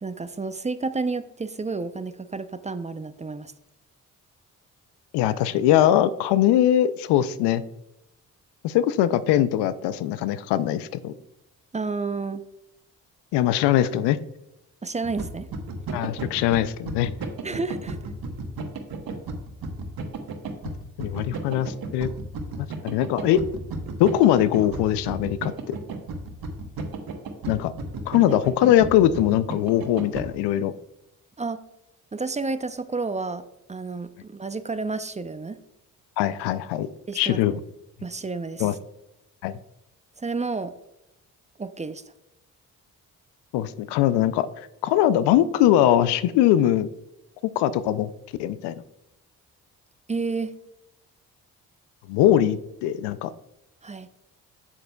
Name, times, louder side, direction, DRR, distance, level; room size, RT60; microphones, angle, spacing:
voice 1, 0.0-3.5 11.7-12.4 14.8-15.5 17.4-18.0 28.3-28.4 31.4-31.6 32.1-35.6 37.1-37.6 38.0-38.7 40.2-40.7 41.6-42.0 50.1-50.5 53.8-54.1, right 3 dB, 20° right, 12 dB, 0.5 m, -31 dB
voice 2, 5.1-7.6 8.6-11.1 13.3-14.2 15.9-17.1 21.0-22.1 22.6-23.4 24.0-25.7 27.5-27.7 28.1-30.7 36.2-36.9 37.2-37.6 38.6-38.7 39.4-39.6 43.5-46.9 47.6-48.1 48.4-48.8 52.1-53.3, left 12 dB, 80° left, 15 dB, 0.5 m, -21 dB
sound 1, 15.0-30.3, right 3 dB, 60° right, 1.2 m, -33 dB
7.6 x 7.4 x 2.2 m, 0.88 s
hypercardioid pair, 45°, 40 cm